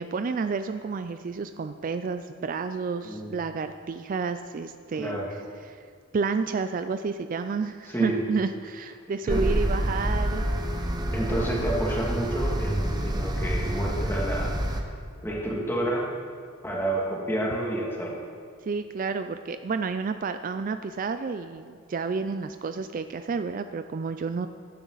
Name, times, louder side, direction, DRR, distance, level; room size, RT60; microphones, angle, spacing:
voice 1, 0.0-5.2 5.7-5.9 6.1-10.5 18.6-24.5, right 4 dB, 40° right, 10 dB, 0.3 m, -30 dB
voice 2, 5.0-5.3 7.9-8.2 9.2-9.4 11.1-14.9 15.2-16.1 16.6-18.2, right 1 dB, 10° left, -3 dB, 2.3 m, -29 dB
sound 1, 9.3-14.8, right 1 dB, 20° right, 0.9 m, -27 dB
15.5 x 11.0 x 4.0 m, 2.1 s
head